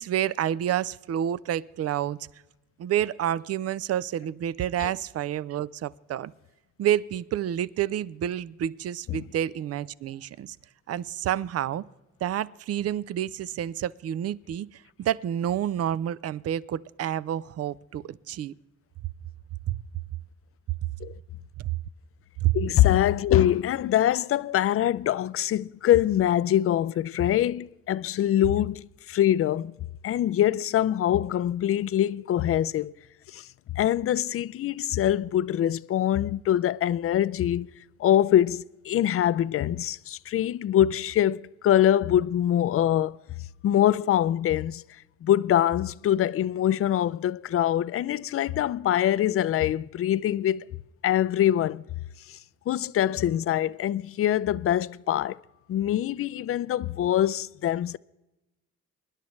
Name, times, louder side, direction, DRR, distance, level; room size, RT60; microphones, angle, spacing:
voice 1, 0.0-2.2 2.8-6.3 6.8-10.6 10.9-11.9 12.2-18.5 19.7-19.8 22.4-22.5, right 11 dB, 55° right, 0.5 m, -29 dB
voice 2, 22.5-29.7 30.0-32.9 33.3-33.4 33.7-37.7 38.0-43.2 43.6-44.8 45.2-50.6 51.0-51.8 52.3-52.4 52.7-55.4 55.7-58.0, left 11 dB, 50° left, 0.4 m, -24 dB
24.0 x 11.0 x 3.2 m
cardioid pair, 90°, 30 cm